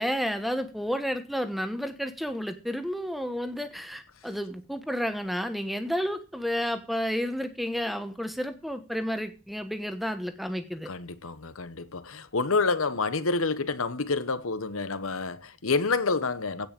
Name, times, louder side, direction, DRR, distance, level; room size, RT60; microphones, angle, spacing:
voice 1, 0.0-10.9, equal, ahead, 1.1 m, -31 dB
voice 2, 10.9-16.7, left 4 dB, 70° left, 1.1 m, -28 dB
16.5 x 5.5 x 6.8 m
head